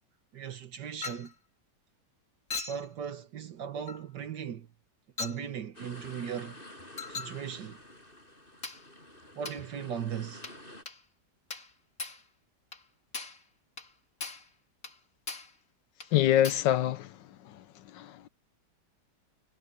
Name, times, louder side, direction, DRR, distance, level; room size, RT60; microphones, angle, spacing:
voice 1, 0.3-1.3 2.7-4.7 5.2-6.6 7.1-7.8 9.4-10.4, right 8 dB, 70° right, 1.7 m, -38 dB
Chink clink, 1.0-1.3 2.5-2.9 3.9-4.0 5.2-5.4 7.0-7.4 8.6-8.9 9.5-9.7 10.4-10.6 10.9-11.0 11.5-11.7 12.0-12.2 12.7-12.8 13.1-13.4 13.8-13.9 14.2-14.5 14.8-15.0 15.3-15.6 16.0-16.1 16.4-16.7, left 4 dB, 50° left, 3.7 m, -39 dB
sound 1, 5.7-10.8, left 1 dB, 30° left, 7.6 m, -49 dB
voice 2, 16.1-17.1 17.5-17.6 17.9-18.3, left 12 dB, 80° left, 1.5 m, -25 dB
omnidirectional pair, 1.9 m